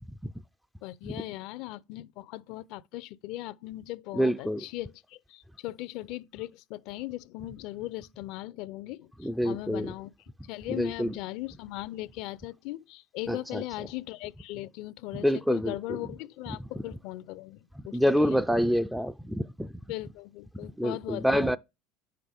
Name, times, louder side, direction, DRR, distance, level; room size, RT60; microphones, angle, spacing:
voice 1, 0.8-10.1 10.5-18.4 19.9-21.6, left 17 dB, 70° left, 0.5 m, -39 dB
voice 2, 4.1-4.6 9.2-9.9 10.8-11.1 13.3-13.6 15.2-16.0 17.9-19.7 20.8-21.6, equal, ahead, 0.4 m, -26 dB
9.7 x 5.8 x 3.4 m
supercardioid pair, 100°, 0 cm